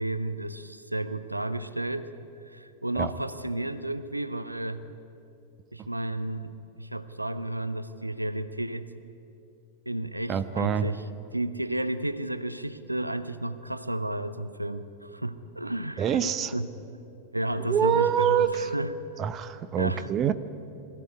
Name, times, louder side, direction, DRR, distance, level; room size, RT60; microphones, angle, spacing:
voice 1, 0.0-2.1 2.5-4.8 5.7-8.9 9.9-11.0 11.3-16.2 16.5-16.7 17.3-18.9 19.8-20.1, right 1 dB, 85° right, 14 dB, 0.7 m, -32 dB
voice 2, 10.3-10.9 16.0-16.5 17.6-18.7 19.2-20.3, right 9 dB, 30° right, 13 dB, 0.8 m, -25 dB
21.5 x 14.5 x 9.7 m, 2.8 s
figure-of-eight pair, 95°, 0 cm